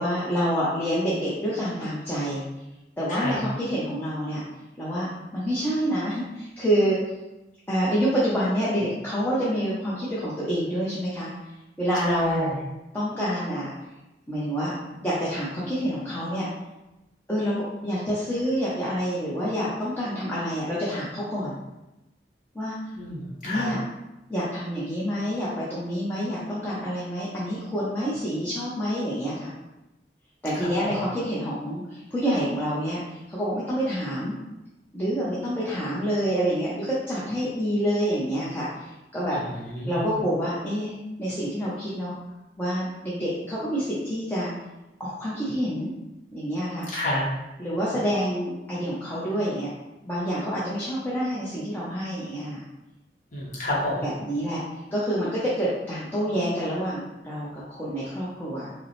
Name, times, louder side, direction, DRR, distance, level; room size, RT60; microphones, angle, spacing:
voice 1, 0.0-2.4 3.0-4.4 4.8-5.1 5.3-7.0 7.7-11.3 11.8-12.5 12.9-13.7 14.3-14.8 15.0-16.5 17.3-21.6 22.5-22.8 23.4-23.8 24.3-29.5 30.4-34.3 34.9-39.4 39.9-42.1 42.6-44.5 45.0-45.9 46.3-46.9 47.6-49.7 50.0-52.6 54.0-54.6 54.9-58.7, equal, 10° left, -9 dB, 0.7 m, -27 dB
voice 2, 3.1-3.4 11.9-12.6 22.9-23.7 30.5-30.9 39.3-40.2 46.9-47.2 53.3-54.0, left 1 dB, 45° left, -5 dB, 1.1 m, -30 dB
5.1 x 2.1 x 3.1 m, 0.99 s
head